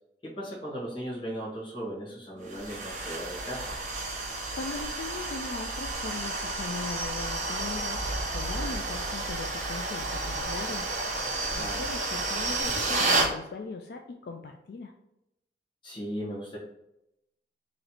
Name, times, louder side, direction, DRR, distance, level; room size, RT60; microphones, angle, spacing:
voice 1, 0.2-3.7 11.5-11.9 15.8-16.6, equal, 25° left, -5 dB, 1.3 m, -37 dB
sound 1, 2.5-13.3, right 2 dB, 40° right, 0.7 m, -31 dB
voice 2, 4.2-10.8 11.5-14.9, left 4 dB, 65° left, 3 dB, 0.3 m, -39 dB
3.1 x 2.9 x 3.9 m, 0.83 s
head